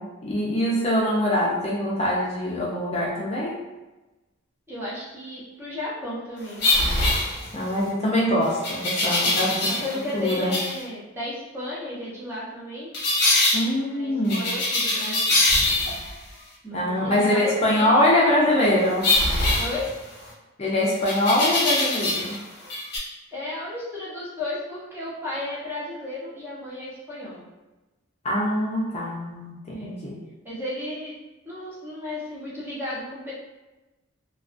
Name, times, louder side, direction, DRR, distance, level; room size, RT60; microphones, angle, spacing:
voice 1, 0.0-3.6 7.5-9.7 10.1-10.5 13.5-14.5 16.7-19.1 20.6-22.4 28.2-29.5 29.8-30.2, left 1 dB, 30° left, -5 dB, 0.4 m, -23 dB
voice 2, 4.7-6.7 9.2-12.9 13.9-15.4 16.6-17.9 19.6-19.9 23.3-27.5 29.7-30.0 30.4-31.1 31.4-33.3, left 1 dB, 10° right, -8 dB, 0.6 m, -34 dB
sound 1, 6.6-7.8 8.6-10.0 10.2-10.8 12.9-13.6 14.3-16.1 19.0-20.3 21.0-22.4 22.6-23.0, left 2 dB, 55° left, 0.8 m, -23 dB
2.3 x 2.3 x 2.4 m, 1.1 s
head